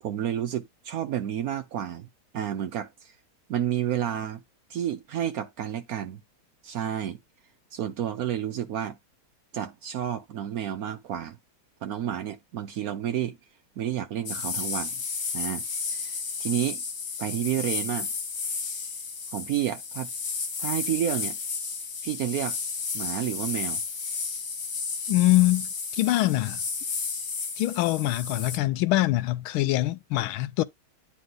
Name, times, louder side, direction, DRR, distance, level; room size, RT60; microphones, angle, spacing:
voice 1, 0.0-2.1 2.3-3.1 3.5-4.4 4.7-6.2 6.6-7.2 7.7-9.0 9.5-11.4 11.8-13.4 13.8-14.9 15.3-15.6 15.9-16.8 17.2-18.1 19.3-20.1 20.6-21.4 22.0-22.6 22.9-23.8, right 10 dB, 80° right, 0.8 m, -30 dB
sound 1, 14.3-28.6, left 5 dB, 55° left, 1.8 m, -33 dB
voice 2, 25.1-26.6 27.6-30.6, left 17 dB, 80° left, 1.4 m, -24 dB
9.5 x 3.4 x 3.7 m
omnidirectional pair, 2.3 m